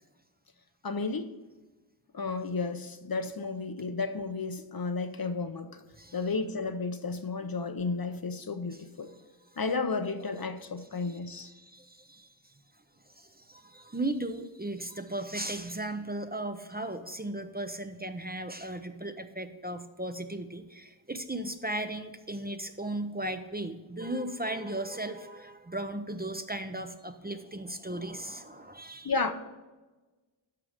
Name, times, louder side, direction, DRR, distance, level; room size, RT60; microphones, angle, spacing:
voice 1, 0.8-1.3 2.1-5.8 6.1-9.1 9.6-11.5 29.0-29.3, left 4 dB, 50° left, 0.8 m, -32 dB
voice 2, 11.0-12.5 13.1-29.2, right 1 dB, 20° right, 0.7 m, -36 dB
12.5 x 4.7 x 5.1 m
wide cardioid pair, 50°, 47 cm